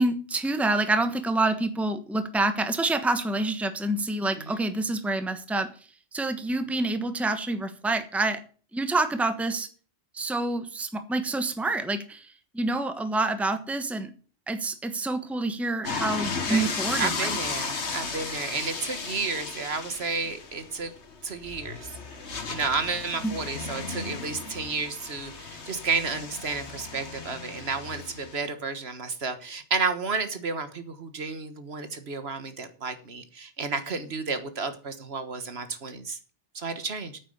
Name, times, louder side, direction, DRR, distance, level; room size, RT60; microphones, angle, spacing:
voice 1, 0.0-5.7 6.1-8.4 8.7-9.7 10.1-12.3 12.5-14.1 14.5-17.4 23.2-23.4, right 2 dB, ahead, 9 dB, 1.1 m, -27 dB
sound 1, 15.8-28.4, left 4 dB, 75° left, 1.8 m, -35 dB
voice 2, 17.0-20.9 21.2-21.9 22.5-36.2 36.5-37.2, right 4 dB, 65° right, 10 dB, 1.6 m, -31 dB
9.4 x 8.6 x 6.6 m, 0.40 s
omnidirectional pair, 1.2 m